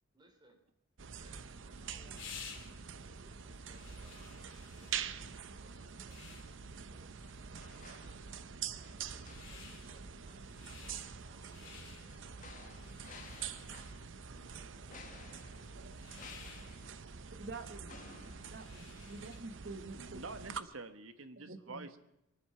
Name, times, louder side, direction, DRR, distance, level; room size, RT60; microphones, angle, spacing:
voice 1, 0.1-0.6 1.1-7.1 7.9-13.9 14.3-15.8 20.2-20.8, right 1 dB, 20° right, 3 dB, 2.9 m, -66 dB
sound 1, 1.0-20.6, right 7 dB, 65° right, 0.7 m, -46 dB
sound 2, 1.2-19.6, left 6 dB, 70° left, 2.7 m, -56 dB
sound 3, 7.2-8.5 8.8-9.8 11.6-14.3 14.9-19.2 19.6-19.7, left 4 dB, 40° left, 1.5 m, -57 dB
voice 2, 17.3-17.9 18.4-20.2 21.4-21.9, right 3 dB, 50° right, 9 dB, 1.1 m, -47 dB
voice 3, 19.9-22.0, right 3 dB, 85° right, 10 dB, 1.2 m, -47 dB
24.0 x 9.4 x 5.7 m, 0.85 s
head